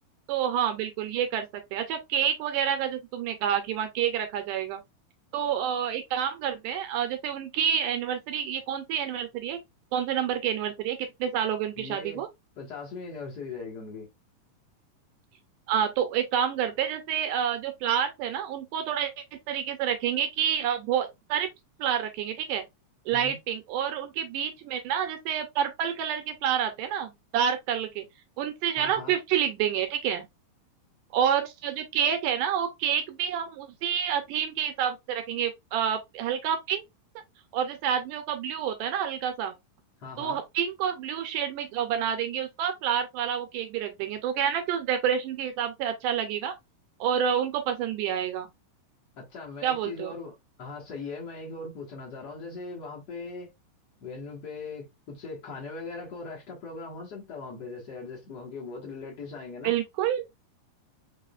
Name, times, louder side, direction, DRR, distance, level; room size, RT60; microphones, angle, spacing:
voice 1, 0.3-4.8 5.3-9.6 9.9-12.3 15.7-19.1 19.5-21.5 21.8-22.6 23.1-28.0 28.4-30.2 31.1-36.8 37.5-39.5 40.2-46.5 47.0-48.5 49.6-50.1 59.6-60.2, right 9 dB, 80° right, 2.0 m, -28 dB
voice 2, 11.8-12.2 12.6-14.1 23.1-23.4 28.8-29.1 40.0-40.4 49.2-50.3 50.6-53.5 54.0-59.7, left 4 dB, 75° left, 0.9 m, -39 dB
4.8 x 3.7 x 2.3 m
omnidirectional pair, 4.0 m